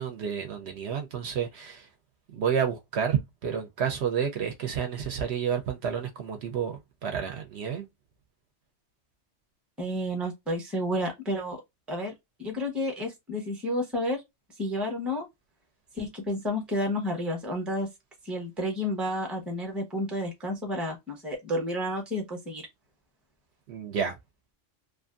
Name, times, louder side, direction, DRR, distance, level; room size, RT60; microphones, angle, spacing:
voice 1, 0.0-1.9 2.3-7.9 23.7-24.2, right 7 dB, 65° right, 0.8 m, -30 dB
voice 2, 9.8-11.6 11.9-12.1 12.4-14.2 14.6-15.2 16.0-17.9 18.2-22.6, left 1 dB, ahead, 0.6 m, -31 dB
2.5 x 2.4 x 2.4 m
omnidirectional pair, 1.3 m